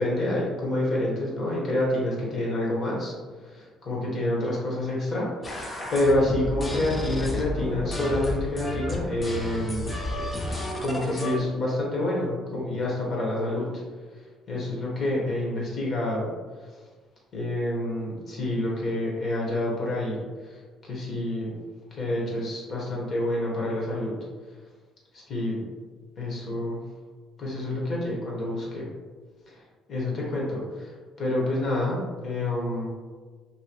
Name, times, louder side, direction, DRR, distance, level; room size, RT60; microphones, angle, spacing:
voice 1, 0.0-3.1 3.4-10.3 10.8-13.7 14.2-16.3 16.6-16.8 17.3-21.6 21.9-24.2 25.1-25.7 26.2-26.8 27.4-28.9 29.5-29.6 29.9-32.9, left 1 dB, 50° left, -4 dB, 1.0 m, -28 dB
sound 1, 5.4-11.4, left 1 dB, 25° left, 0.6 m, -32 dB
2.8 x 2.7 x 2.9 m, 1.4 s
cardioid pair, 105°, 0 cm